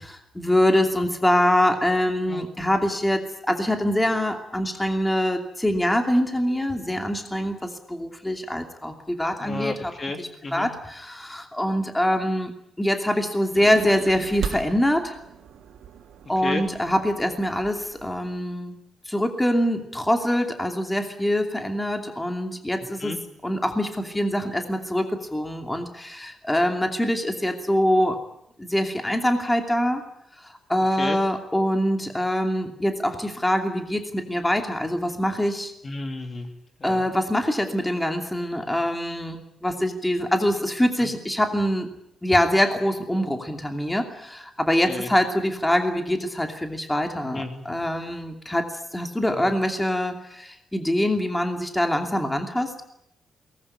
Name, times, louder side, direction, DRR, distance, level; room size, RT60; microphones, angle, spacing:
voice 1, 0.3-9.9 10.2-15.2 16.3-18.8 19.1-23.2 23.4-28.2 28.6-30.0 30.4-35.7 36.8-41.9 42.2-52.8, left 1 dB, 10° left, 5 dB, 2.7 m, -24 dB
voice 2, 9.4-10.7 16.4-16.6 23.0-23.2 31.0-31.2 35.8-36.5 36.8-37.1 41.0-41.1 44.8-45.1 47.3-47.7 49.3-49.6, left 3 dB, 30° left, 6 dB, 2.8 m, -32 dB
sound 1, 13.5-18.4, right 7 dB, 85° right, 3.3 m, -37 dB
22.5 x 20.0 x 9.9 m, 0.77 s
wide cardioid pair, 150°, 0 cm